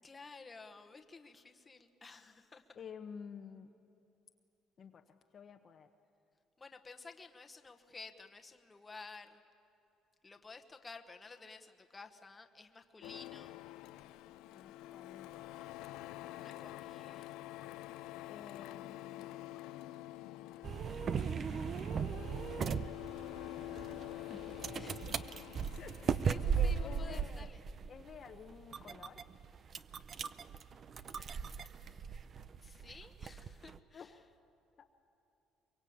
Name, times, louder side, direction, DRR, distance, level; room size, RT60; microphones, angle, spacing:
voice 1, 0.0-2.6 6.6-9.4 10.2-13.5 16.4-17.3 24.8-25.1 26.2-27.6 31.9-32.2 32.6-34.2, left 4 dB, 15° left, 6 dB, 1.2 m, -53 dB
voice 2, 2.7-3.7 4.8-5.9 14.5-15.5 16.2-16.7 18.3-19.5 24.3-24.4 24.7-25.1 25.8-26.2 26.5-27.5 27.9-29.2 33.9-34.2 34.8-34.9, left 6 dB, 35° left, 5 dB, 0.9 m, -51 dB
Printer, 13.0-27.2, left 15 dB, 85° left, 0.6 m, -47 dB
sound 1, 20.6-33.8, right 6 dB, 35° right, 0.6 m, -38 dB
23.5 x 23.5 x 8.7 m, 2.9 s
cardioid pair, 150°, 0 cm